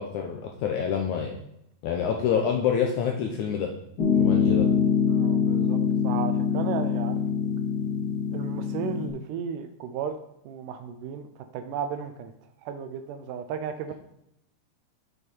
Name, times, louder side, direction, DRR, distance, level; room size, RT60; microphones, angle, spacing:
voice 1, 0.0-1.4 1.8-3.7 4.1-4.7, left 7 dB, 80° left, 2 dB, 1.8 m, -27 dB
Piano, 4.0-9.1, left 7 dB, 65° left, 1.0 m, -24 dB
voice 2, 5.1-5.8 6.0-7.2 8.3-10.2 10.5-12.3 12.6-13.9, right 7 dB, 80° right, 8 dB, 1.9 m, -34 dB
6.8 x 6.5 x 4.4 m, 0.78 s
omnidirectional pair, 4.2 m